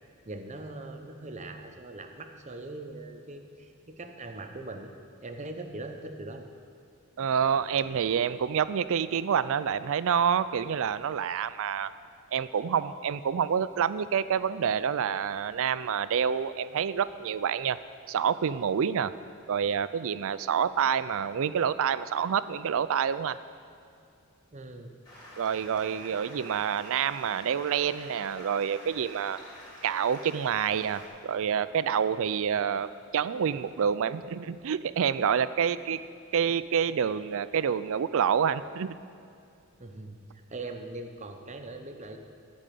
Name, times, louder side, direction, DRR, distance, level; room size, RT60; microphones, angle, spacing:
voice 1, 0.2-4.9 5.2-6.5 24.5-24.9 39.8-40.2 40.5-42.2, right 2 dB, 30° right, 5 dB, 0.8 m, -41 dB
voice 2, 7.2-11.9 12.3-17.8 18.1-19.1 19.5-23.4 25.4-29.4 29.8-36.0 36.3-38.9, right 7 dB, 60° right, 15 dB, 0.4 m, -27 dB
Stream, 25.0-31.1, left 1 dB, 20° left, 2.9 m, -48 dB
12.5 x 5.3 x 8.4 m, 2.5 s
head